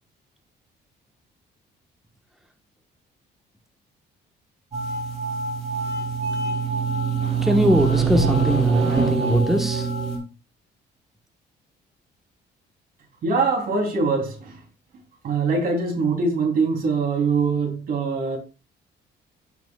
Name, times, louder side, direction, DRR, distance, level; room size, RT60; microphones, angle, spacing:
sound 1, 4.7-10.2, right 5 dB, 35° right, 3.9 m, -24 dB
voice 1, 7.4-9.9, equal, ahead, 1.1 m, -21 dB
voice 2, 13.2-14.5 15.2-18.4, right 4 dB, 55° right, 3.0 m, -23 dB
14.5 x 5.9 x 2.3 m
cardioid pair, 150°, 18 cm